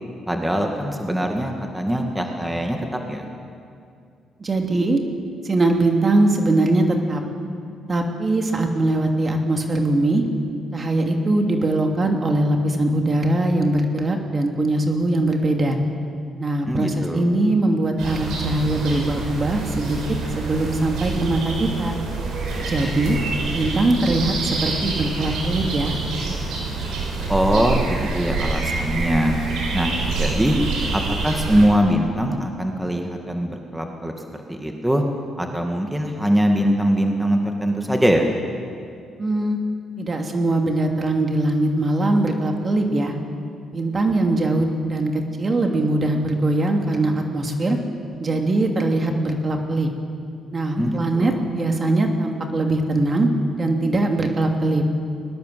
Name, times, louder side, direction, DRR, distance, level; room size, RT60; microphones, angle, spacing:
voice 1, 0.3-3.3 16.6-17.3 27.3-29.4 29.7-30.6 30.9-34.1 34.5-35.0 35.4-38.3 50.8-51.4, equal, 5° right, 3 dB, 2.3 m, -22 dB
voice 2, 4.4-5.0 5.4-7.2 7.9-10.2 10.7-15.8 16.4-20.0 20.4-22.0 22.6-23.2 23.5-25.9 39.2-39.6 40.0-43.1 43.7-45.1 45.4-47.8 48.2-49.9 50.5-53.3 53.6-54.8, right 2 dB, 35° right, 3 dB, 2.8 m, -21 dB
sound 1, 18.0-31.7, right 3 dB, 85° right, 6.4 m, -27 dB
21.0 x 20.0 x 7.8 m, 2.4 s
cardioid pair, 90°, 0 cm